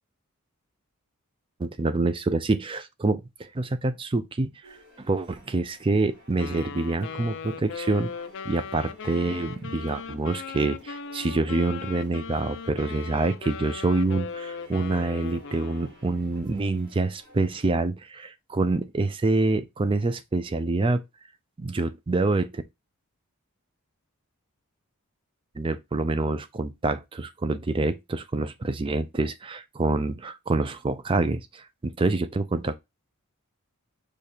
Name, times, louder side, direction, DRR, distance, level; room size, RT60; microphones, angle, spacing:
voice 1, 1.6-4.5 5.0-8.1 8.4-21.0 21.6-22.6 25.6-32.7, right 3 dB, 25° right, 0.4 m, -26 dB
sound 1, 4.6-17.7, equal, 55° right, 3.0 m, -54 dB
Wind instrument woodwind instrument, 6.4-16.0, left 6 dB, 55° left, 0.4 m, -38 dB
5.0 x 2.4 x 4.2 m
head